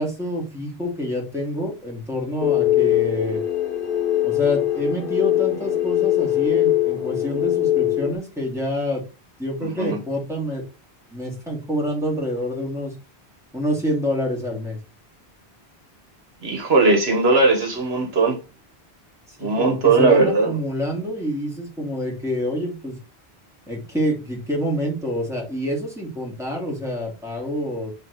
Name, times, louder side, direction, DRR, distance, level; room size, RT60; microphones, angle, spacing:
voice 1, 0.0-3.4 4.2-9.0 9.4-10.6 11.1-12.9 13.5-14.8 19.4-23.0 23.7-27.9, equal, 5° right, 2.5 m, -27 dB
sound 1, 2.4-8.1, left 13 dB, 55° left, 1.1 m, -21 dB
voice 2, 9.6-10.0 16.4-18.4 19.4-20.5, right 3 dB, 70° right, 1.5 m, -18 dB
7.3 x 3.4 x 4.0 m
omnidirectional pair, 1.1 m